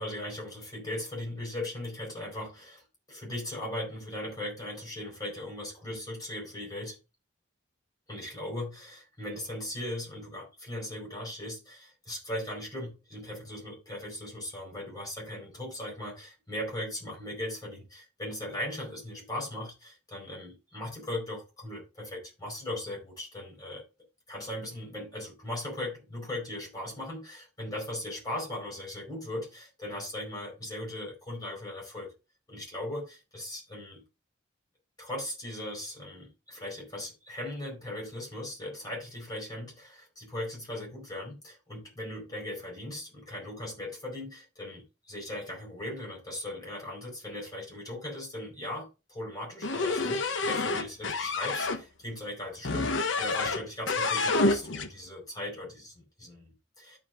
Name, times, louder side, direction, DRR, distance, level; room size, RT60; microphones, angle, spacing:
voice 1, 0.0-7.0 8.1-23.8 24.3-32.1 32.5-34.0 35.0-57.0, left 1 dB, 20° left, 4.7 m, -38 dB
sound 1, 49.6-51.8 52.6-53.6 53.9-54.9, left 3 dB, 70° left, 0.9 m, -28 dB
13.0 x 5.1 x 2.5 m
head